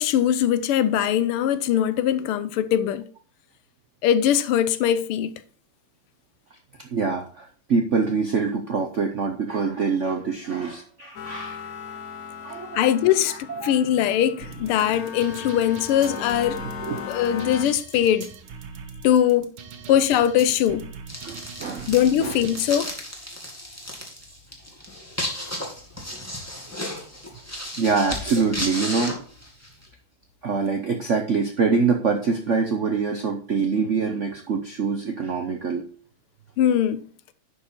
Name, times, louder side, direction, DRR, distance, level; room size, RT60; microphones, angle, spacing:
voice 1, 0.0-3.1 4.0-5.3 12.7-16.6 17.1-18.3 19.0-19.5 19.9-20.9 21.9-22.9 36.6-37.0, left 10 dB, 85° left, 1.6 m, -21 dB
voice 2, 6.8-11.7 12.4-12.9 13.2-13.8 16.8-17.0 21.2-21.9 22.2-22.4 27.8-29.1 30.4-35.8, right 5 dB, 65° right, 0.7 m, -25 dB
sound 1, 11.2-17.7, left 7 dB, 55° left, 1.0 m, -37 dB
sound 2, 14.4-23.0, right 6 dB, 85° right, 2.0 m, -41 dB
sound 3, 21.1-29.9, left 1 dB, 5° left, 1.8 m, -34 dB
11.0 x 4.9 x 4.4 m
omnidirectional pair, 2.4 m